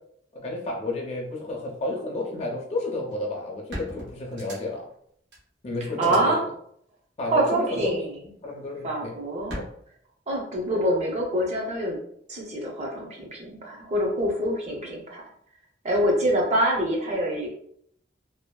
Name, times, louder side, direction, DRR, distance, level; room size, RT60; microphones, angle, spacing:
voice 1, 0.3-4.8 5.6-6.4 7.2-8.0 8.4-9.1 9.5-9.7, left 2 dB, 35° left, -2 dB, 0.4 m, -31 dB
sound 1, 3.1-3.2 3.7-4.9 5.3-5.4 5.9-6.2 7.5-8.0 9.5-9.6, equal, 70° right, 1.0 m, -38 dB
voice 2, 6.0-6.4 7.3-8.1 8.8-9.6 10.3-12.0 12.3-15.2 15.8-17.5, right 1 dB, 35° right, 0 dB, 0.6 m, -25 dB
2.6 x 2.3 x 2.2 m, 0.68 s
head